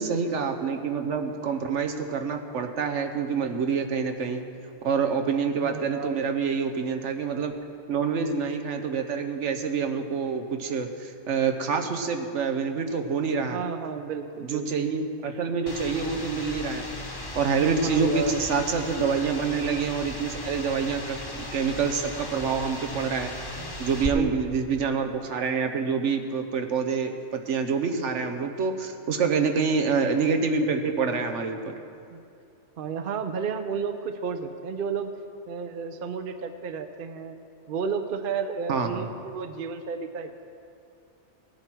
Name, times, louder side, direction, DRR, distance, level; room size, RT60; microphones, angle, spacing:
voice 1, 0.0-4.4 4.8-7.5 7.9-13.6 14.4-16.9 17.3-23.3 23.8-31.7 38.7-39.0, right 5 dB, 90° right, 5 dB, 1.3 m, -27 dB
voice 2, 5.6-6.2 13.4-14.9 17.6-18.3 23.6-23.7 24.0-24.5 29.2-29.5 32.1-32.2 32.8-35.1 35.5-37.4 37.7-40.4, right 6 dB, 55° right, 8 dB, 0.8 m, -32 dB
sound 1, 15.7-24.1, left 2 dB, 20° left, 0.9 m, -37 dB
17.5 x 9.9 x 4.5 m, 2.5 s
omnidirectional pair, 1.2 m